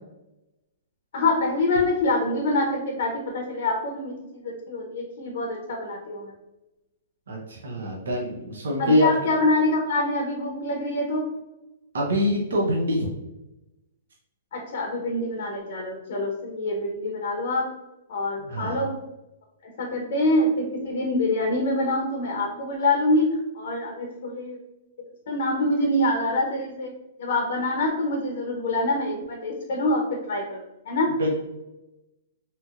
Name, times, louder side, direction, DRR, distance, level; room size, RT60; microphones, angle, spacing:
voice 1, 1.1-6.3 8.8-11.2 14.5-17.7 18.1-18.9 19.6-24.6 25.3-26.9 27.2-31.1, left 2 dB, 65° left, 1 dB, 0.6 m, -25 dB
voice 2, 7.3-9.1 11.9-13.1 18.4-18.9 31.2-31.3, equal, 85° right, -1 dB, 0.6 m, -25 dB
2.8 x 2.8 x 2.4 m, 0.96 s
hypercardioid pair, 145°, 0 cm